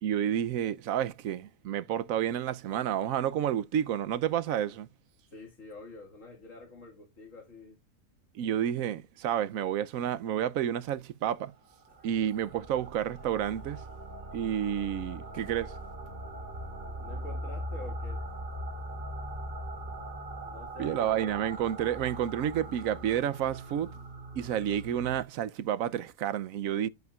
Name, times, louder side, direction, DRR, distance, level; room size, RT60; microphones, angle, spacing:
voice 1, 0.0-4.9 8.3-11.5 12.0-13.8 14.3-15.7 20.8-23.9 24.4-26.9, right 10 dB, 80° right, 1.1 m, -30 dB
voice 2, 5.3-7.8 12.0-12.1 17.0-18.3 20.5-21.5, left 1 dB, 70° left, 2.5 m, -47 dB
sound 1, 11.7-25.2, right 1 dB, 45° right, 2.7 m, -41 dB
11.5 x 8.1 x 2.4 m
omnidirectional pair, 1.4 m